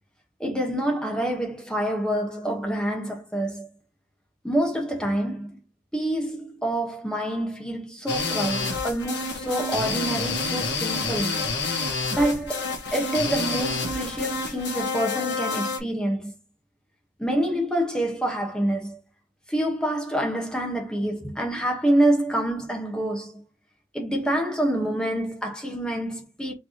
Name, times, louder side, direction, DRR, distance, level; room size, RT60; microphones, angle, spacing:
voice 1, 0.4-3.7 4.4-5.6 5.9-11.5 12.1-16.3 17.2-19.0 19.5-23.4 23.9-26.5, right 1 dB, 5° left, 1.3 m, -27 dB
sound 1, 8.1-15.8, left 3 dB, 75° left, 1.4 m, -28 dB
4.4 x 3.5 x 3.0 m
head